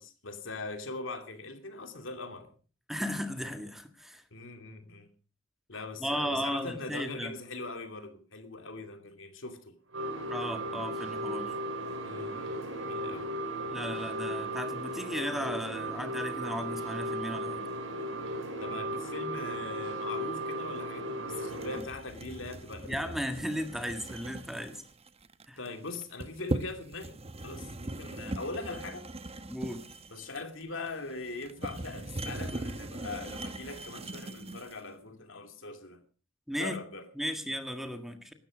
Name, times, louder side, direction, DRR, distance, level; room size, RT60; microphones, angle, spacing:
voice 1, 0.0-2.5 4.3-5.1 5.7-9.7 12.0-13.3 18.6-23.2 25.6-27.2 27.4-29.0 30.1-36.0 36.6-37.0, left 3 dB, 75° left, 2.7 m, -41 dB
voice 2, 2.9-4.2 6.0-7.3 10.3-11.5 13.7-17.7 22.9-24.8 25.5-25.6 29.5-29.8 36.5-36.8 37.2-38.3, equal, ahead, 1.7 m, -35 dB
sound 1, 9.9-21.8, right 1 dB, 80° right, 4.3 m, -36 dB
sound 2, 21.5-34.8, right 2 dB, 30° right, 0.9 m, -40 dB
17.5 x 13.0 x 5.1 m
head